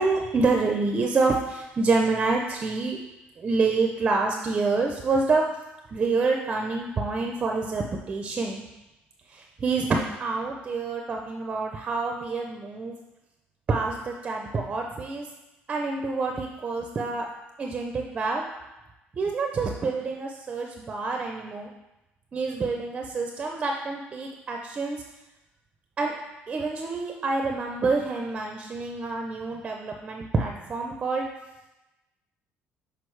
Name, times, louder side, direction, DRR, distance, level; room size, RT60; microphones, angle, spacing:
voice 1, 0.0-3.0 3.4-5.4 5.9-8.6 9.3-13.0 13.7-15.3 15.7-17.3 17.6-18.5 19.2-21.7 22.3-25.0 26.0-26.1 26.5-31.3, right 3 dB, 25° right, 1 dB, 0.4 m, -27 dB
6.1 x 5.1 x 3.2 m, 0.99 s
cardioid pair, 160°, 4 cm